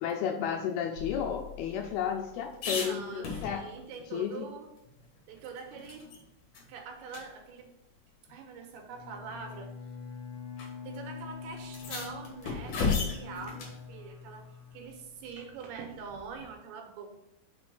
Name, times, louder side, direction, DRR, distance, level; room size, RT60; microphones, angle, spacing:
voice 1, 0.0-3.6 4.1-4.5, left 8 dB, 80° left, 3 dB, 2.4 m, -32 dB
sound 1, 1.0-3.9 4.3-4.4 4.8-6.2 6.5-6.7 7.1-7.2 8.3-8.4 9.3-9.6 10.6-10.7 10.9-11.0 11.6-13.8 16.1-16.5, left 5 dB, 60° left, 2.4 m, -36 dB
voice 2, 2.8-4.7 5.3-6.1 6.7-7.7 8.3-9.7 10.8-14.5 14.7-17.1, right 5 dB, 75° right, 3 dB, 2.9 m, -44 dB
Bowed string instrument, 8.9-15.5, left 6 dB, 40° left, 2.8 m, -45 dB
6.1 x 4.3 x 6.0 m, 0.84 s
omnidirectional pair, 4.9 m